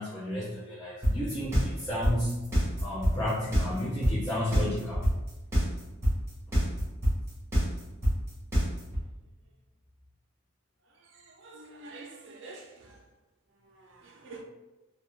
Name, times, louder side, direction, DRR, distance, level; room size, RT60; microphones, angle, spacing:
voice 1, 0.0-2.3 2.8-5.0, left 1 dB, 15° left, -9 dB, 0.5 m, -32 dB
sound 1, 1.0-9.0, equal, 15° right, 0.9 m, -25 dB
voice 2, 11.1-13.0 13.6-14.4, right 3 dB, 60° right, 2 dB, 0.4 m, -47 dB
2.3 x 2.2 x 3.0 m, 1.0 s
head